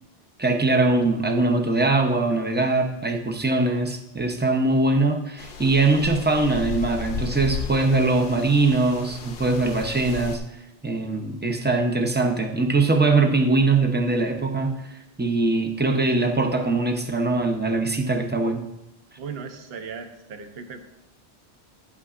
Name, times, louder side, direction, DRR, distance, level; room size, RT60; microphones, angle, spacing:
voice 1, 0.4-10.4 10.8-18.6, right 3 dB, 10° right, 3 dB, 0.6 m, -22 dB
sound 1, 5.4-10.4, left 5 dB, 65° left, 0.9 m, -35 dB
voice 2, 19.2-20.8, right 5 dB, 65° right, 6 dB, 1.0 m, -37 dB
10.5 x 8.5 x 2.5 m, 0.89 s
omnidirectional pair, 1.1 m